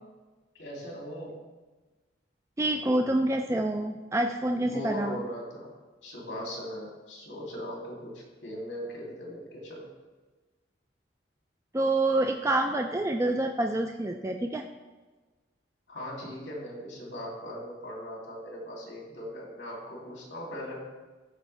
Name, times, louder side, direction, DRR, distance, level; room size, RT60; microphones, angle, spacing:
voice 1, 0.6-1.4 4.5-5.7 6.0-9.9 15.9-20.8, equal, 75° left, -3 dB, 2.9 m, -39 dB
voice 2, 2.6-5.2 11.7-14.6, right 1 dB, 15° right, 4 dB, 0.3 m, -27 dB
13.5 x 5.3 x 3.4 m, 1.3 s
head